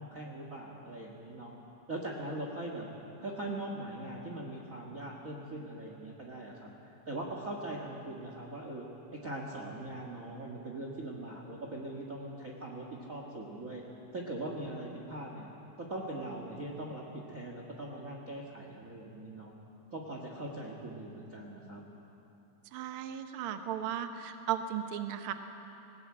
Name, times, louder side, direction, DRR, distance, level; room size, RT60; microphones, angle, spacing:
voice 1, 0.0-1.5 1.9-2.9 3.2-6.7 7.1-8.9 9.1-13.8 14.1-15.5 15.8-19.5 19.9-21.8, right 1 dB, 35° right, 0 dB, 1.5 m, -41 dB
voice 2, 22.7-25.3, right 9 dB, 70° right, 7 dB, 1.3 m, -36 dB
19.5 x 18.5 x 8.6 m, 3.0 s
omnidirectional pair, 3.6 m